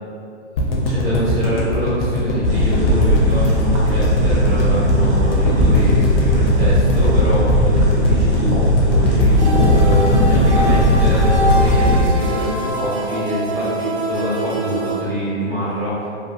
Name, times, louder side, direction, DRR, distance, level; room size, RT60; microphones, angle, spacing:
sound 1, 0.6-12.7 13.0-13.1 13.3-13.4, left 1 dB, 55° left, 0.6 m, -20 dB
voice 1, 0.6-16.1, equal, 55° right, -8 dB, 1.1 m, -24 dB
sound 2, 2.4-12.1, left 1 dB, 30° right, 0.6 m, -17 dB
sound 3, 9.4-15.0, right 1 dB, 85° right, 0.7 m, -24 dB
2.9 x 2.4 x 2.3 m, 2.4 s
hypercardioid pair, 135°, 36 cm